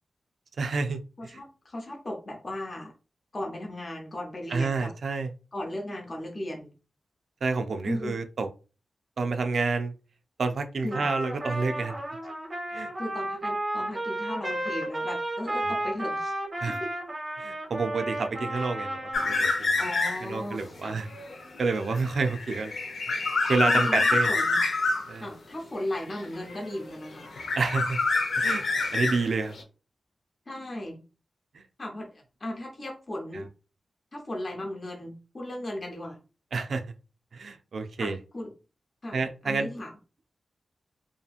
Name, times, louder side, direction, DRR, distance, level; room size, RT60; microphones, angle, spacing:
voice 1, 0.6-1.4 4.5-5.3 7.4-8.5 9.2-9.9 10.4-12.0 12.7-12.9 15.6-15.7 16.6-16.8 17.4-19.8 20.2-21.1 21.6-22.7 23.1-24.3 25.1-25.3 27.5-28.0 28.4-28.6 28.9-29.5 31.5-31.6 33.3-33.4 36.5-36.8 37.3-38.2 39.1-39.7, right 4 dB, 65° right, 7 dB, 0.3 m, -29 dB
voice 2, 1.2-2.9 3.3-4.9 5.5-6.7 7.8-8.2 10.8-11.0 13.0-16.4 16.7-16.9 19.8-20.9 23.7-24.6 25.2-27.3 28.4-28.5 30.5-31.0 31.8-32.1 32.4-33.5 34.1-36.2 38.0-38.5 39.0-39.2 39.4-39.9, left 1 dB, 35° left, 0 dB, 0.6 m, -36 dB
Trumpet, 10.9-19.4, right 1 dB, 30° right, 0.6 m, -33 dB
sound 1, 19.1-20.4 20.8-25.1 26.1-26.9 27.2-29.6, left 3 dB, 80° left, 0.6 m, -27 dB
2.8 x 2.5 x 2.3 m, 0.34 s
wide cardioid pair, 150°, 0 cm